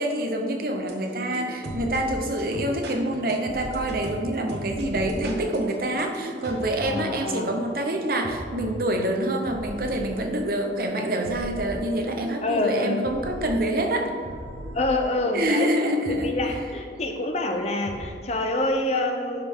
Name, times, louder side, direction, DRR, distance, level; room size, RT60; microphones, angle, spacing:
voice 1, 0.0-14.1 15.3-16.4, right 1 dB, 50° right, 3 dB, 0.9 m, -26 dB
sound 1, 0.8-18.1, equal, 70° right, 1.2 m, -38 dB
voice 2, 6.8-7.5 12.4-13.0 14.7-15.7 16.1-19.4, left 2 dB, 35° left, 4 dB, 0.7 m, -26 dB
10.5 x 5.6 x 3.6 m, 2.1 s
head